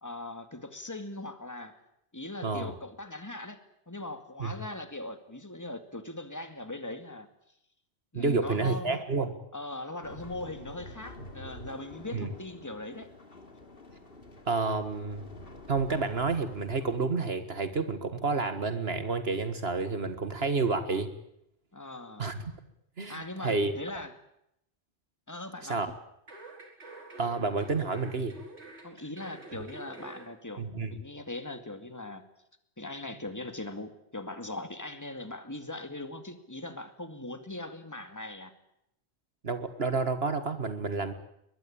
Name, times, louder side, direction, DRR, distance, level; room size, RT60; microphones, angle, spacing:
voice 1, 0.0-1.8 2.1-3.6 3.9-7.3 8.1-9.0 9.5-13.1 21.7-22.2 23.1-24.1 25.3-25.8 28.8-32.2 32.8-38.5, left 2 dB, 15° left, 8 dB, 2.2 m, -40 dB
voice 2, 2.4-2.7 4.4-4.5 8.1-9.3 12.1-12.3 14.5-15.3 15.7-21.1 22.2-22.4 23.0-23.7 25.6-25.9 27.2-28.4 30.6-31.0 39.4-41.1, right 4 dB, 65° right, 10 dB, 1.9 m, -30 dB
sound 1, 10.0-17.0, left 1 dB, 60° left, 3.0 m, -48 dB
sound 2, 26.3-30.3 30.6-30.7, right 2 dB, 80° right, 5.3 m, -47 dB
22.0 x 22.0 x 8.7 m, 0.78 s
omnidirectional pair, 1.1 m